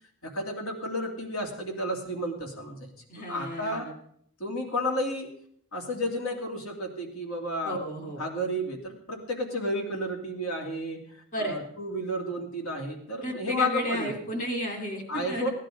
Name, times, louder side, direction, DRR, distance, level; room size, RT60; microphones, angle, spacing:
voice 1, 0.2-3.9 4.4-5.3 5.7-7.8 8.2-14.2 15.1-15.5, equal, 75° left, 2 dB, 2.8 m, -32 dB
voice 2, 3.1-3.9 7.6-8.2 11.3-11.6 13.2-15.5, equal, 35° left, 4 dB, 2.5 m, -33 dB
17.0 x 10.5 x 5.1 m, 0.66 s
head